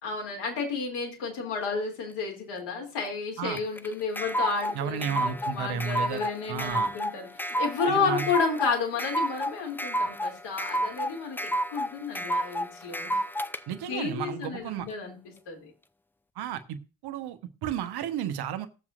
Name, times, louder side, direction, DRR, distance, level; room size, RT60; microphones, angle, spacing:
voice 1, 0.0-13.2 13.8-15.2 15.5-15.7, left 5 dB, 65° left, 1 dB, 2.9 m, -31 dB
sound 1, 3.6-13.6, equal, 5° left, 0.4 m, -30 dB
voice 2, 4.7-6.2 6.5-6.9 7.9-8.2 13.7-14.9 16.4-16.8 17.0-18.7, right 8 dB, 60° right, 9 dB, 1.1 m, -33 dB
19.0 x 7.2 x 2.5 m, 0.33 s
figure-of-eight pair, 40°, 44 cm